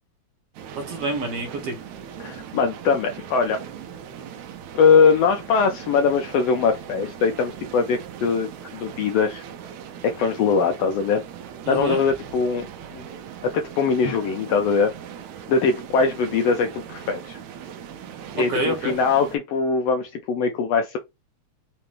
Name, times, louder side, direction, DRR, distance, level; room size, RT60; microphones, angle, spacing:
sound 1, 0.5-19.4, right 8 dB, 80° right, 2.0 m, -40 dB
voice 1, 0.8-1.8 11.6-12.0 18.4-19.0, right 2 dB, 60° right, 2.3 m, -27 dB
voice 2, 2.2-3.6 4.7-9.4 10.0-11.2 11.7-13.0 13.5-14.9 15.5-17.4 18.3-21.0, left 5 dB, 80° left, 1.4 m, -21 dB
Drum, 14.0-15.8, left 3 dB, 60° left, 1.8 m, -41 dB
5.1 x 2.9 x 3.3 m
omnidirectional pair, 3.3 m